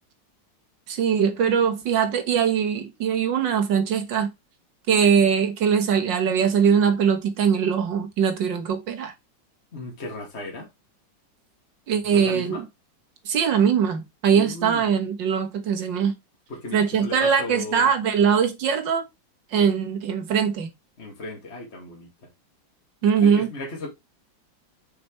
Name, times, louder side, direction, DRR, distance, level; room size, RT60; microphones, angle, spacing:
voice 1, 0.9-4.3 4.9-9.1 11.9-12.6 13.3-16.1 16.7-19.1 19.5-20.7 23.0-23.5, right 7 dB, 75° right, 2.0 m, -21 dB
voice 2, 9.7-10.7 12.0-12.6 14.3-14.9 16.5-17.9 21.0-22.3 23.2-23.9, left 1 dB, 35° left, 2.3 m, -36 dB
6.2 x 5.9 x 3.1 m
omnidirectional pair, 2.0 m